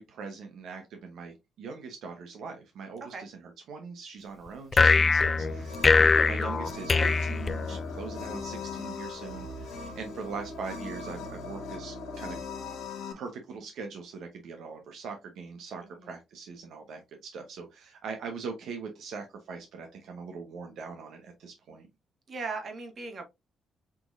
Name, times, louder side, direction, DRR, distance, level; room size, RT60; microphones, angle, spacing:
voice 1, 0.0-12.4 13.2-21.9, right 5 dB, 75° right, 0.8 m, -41 dB
sound 1, 4.7-8.1, left 4 dB, 35° left, 0.3 m, -23 dB
sound 2, 5.1-13.1, left 3 dB, 85° left, 1.3 m, -40 dB
voice 2, 22.3-23.3, right 4 dB, 45° right, 1.6 m, -38 dB
6.0 x 3.0 x 2.5 m
cardioid pair, 90°, 0 cm